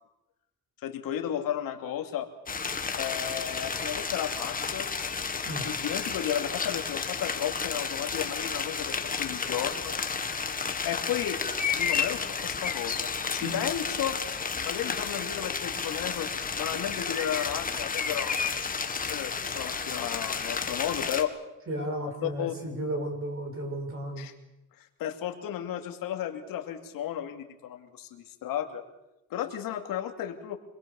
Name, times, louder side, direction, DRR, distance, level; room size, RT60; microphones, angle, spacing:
voice 1, 0.8-2.3 3.0-4.9 5.6-9.9 10.8-11.4 11.7-14.2 14.6-21.3 22.2-22.5 24.2-24.3 24.8-28.8 29.3-30.6, left 10 dB, 85° left, 5 dB, 2.7 m, -34 dB
sound 1, 2.5-21.2, left 5 dB, 25° left, 1.8 m, -32 dB
voice 2, 21.7-24.2, right 1 dB, 40° right, 4 dB, 6.8 m, -34 dB
26.0 x 21.5 x 7.2 m, 0.92 s
cardioid pair, 130°, 33 cm